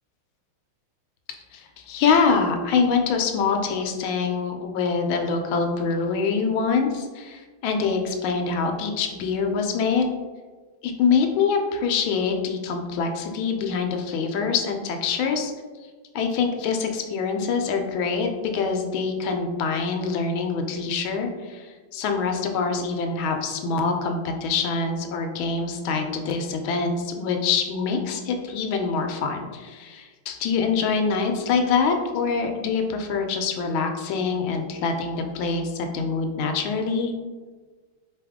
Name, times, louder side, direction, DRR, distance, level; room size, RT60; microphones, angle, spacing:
voice 1, 1.5-10.1 10.8-15.5 16.1-37.1, left 5 dB, 75° left, 4 dB, 1.3 m, -25 dB
4.1 x 3.4 x 3.5 m, 1.4 s
omnidirectional pair, 2.4 m